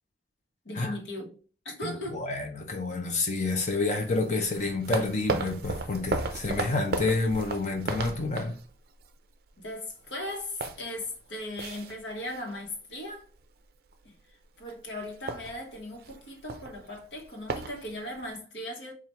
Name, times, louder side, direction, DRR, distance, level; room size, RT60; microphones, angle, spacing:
voice 1, 0.6-1.4 1.6-2.2 9.6-13.3 14.0-18.9, left 1 dB, 90° left, 1.1 m, -38 dB
voice 2, 1.8-8.6, left 3 dB, 40° left, 0.6 m, -29 dB
sound 1, 3.9-9.1 9.5-9.7 10.0-12.8 13.1-13.4 13.9-14.3 14.6-14.7 15.0-18.4, right 3 dB, 55° right, 0.4 m, -35 dB
4.3 x 2.4 x 3.2 m
head